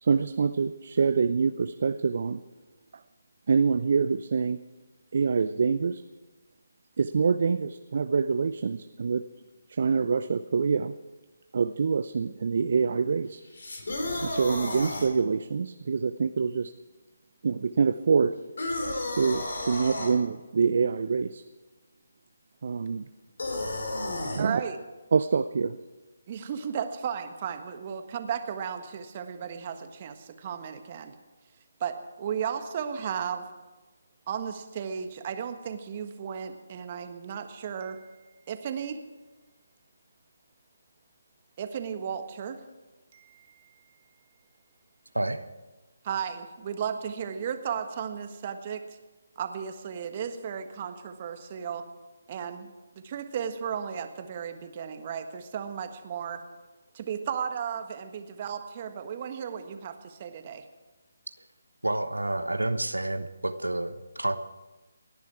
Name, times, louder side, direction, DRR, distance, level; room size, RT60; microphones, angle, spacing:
voice 1, 0.0-2.4 3.5-4.6 5.1-6.0 7.0-9.2 9.7-10.9 11.5-13.4 14.2-16.7 17.4-18.4 19.1-21.4 22.6-23.1 24.3-24.6 25.1-25.8, right 5 dB, 50° right, 12 dB, 0.6 m, -25 dB
sound 1, 13.5-15.1 18.6-20.1 23.4-24.5, left 2 dB, 65° left, 4.1 m, -32 dB
voice 2, 24.4-24.8 26.3-31.1 31.8-33.4 34.3-38.2 38.5-39.0 41.6-42.6 43.1-43.8 46.0-48.8 49.3-51.8 52.3-56.4 56.9-60.6, right 7 dB, 35° right, 7 dB, 1.5 m, -35 dB
voice 3, 45.1-45.5 61.8-64.4, right 1 dB, 85° right, 10 dB, 1.1 m, -29 dB
29.0 x 10.5 x 4.8 m, 1.2 s
figure-of-eight pair, 150°, 0 cm